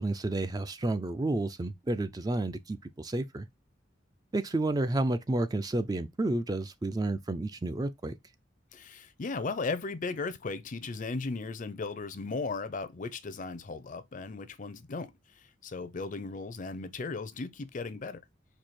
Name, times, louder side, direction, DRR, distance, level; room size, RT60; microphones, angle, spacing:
voice 1, 0.0-3.5 4.3-8.2, right 2 dB, 20° right, 0.3 m, -31 dB
voice 2, 8.7-18.2, left 3 dB, 40° left, 0.5 m, -36 dB
4.5 x 2.7 x 4.1 m
head